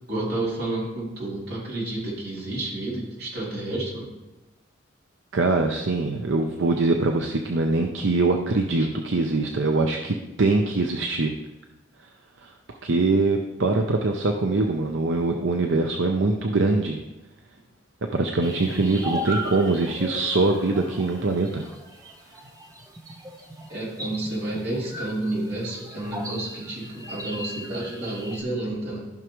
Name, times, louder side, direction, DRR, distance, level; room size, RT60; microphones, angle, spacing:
voice 1, 0.1-4.1 23.7-29.1, right 2 dB, 50° right, -5 dB, 3.3 m, -30 dB
voice 2, 5.3-11.3 12.4-12.5 12.8-17.0 18.1-21.7, right 3 dB, 70° right, 3 dB, 0.7 m, -23 dB
sound 1, 18.4-28.4, equal, 20° right, 0.8 m, -37 dB
14.5 x 6.1 x 3.1 m, 1.0 s
head